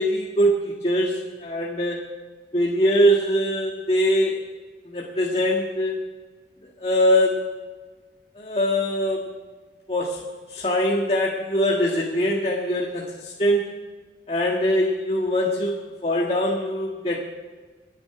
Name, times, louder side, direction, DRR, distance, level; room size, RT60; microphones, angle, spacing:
voice 1, 0.0-2.1 2.5-4.4 4.8-6.0 6.8-7.5 8.3-9.3 9.9-13.7 14.3-17.2, equal, 35° left, -2 dB, 1.7 m, -22 dB
26.0 x 9.9 x 4.9 m, 1.4 s
head